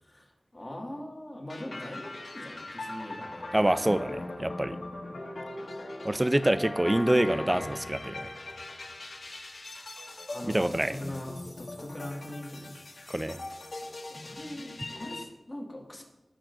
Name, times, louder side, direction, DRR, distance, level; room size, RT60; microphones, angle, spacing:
voice 1, 0.0-3.7 4.8-5.2 10.3-12.8 14.1-16.0, left 1 dB, 30° left, -2 dB, 2.0 m, -42 dB
sound 1, 1.5-15.2, left 2 dB, 70° left, 1.2 m, -40 dB
voice 2, 3.5-4.8 6.0-8.3 10.5-10.9 13.1-13.4, right 1 dB, 20° right, 12 dB, 0.4 m, -26 dB
16.5 x 6.3 x 2.6 m, 1.1 s
wide cardioid pair, 75°, 0 cm